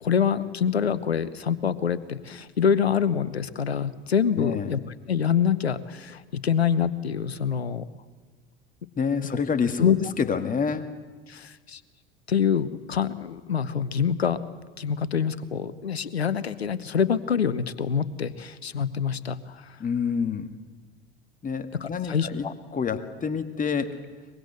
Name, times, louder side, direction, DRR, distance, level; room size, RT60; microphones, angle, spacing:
voice 1, 0.0-4.8 5.1-7.8 9.3-9.4 9.8-10.0 11.3-11.8 12.3-14.4 14.8-19.8 21.8-22.5, left 7 dB, 85° left, 17 dB, 0.9 m, -25 dB
voice 2, 4.4-4.7 9.0-10.9 19.8-20.5 21.4-22.5 22.7-24.0, left 6 dB, 25° left, 9 dB, 1.9 m, -27 dB
23.5 x 21.5 x 8.1 m, 1.4 s
figure-of-eight pair, 70°, 31 cm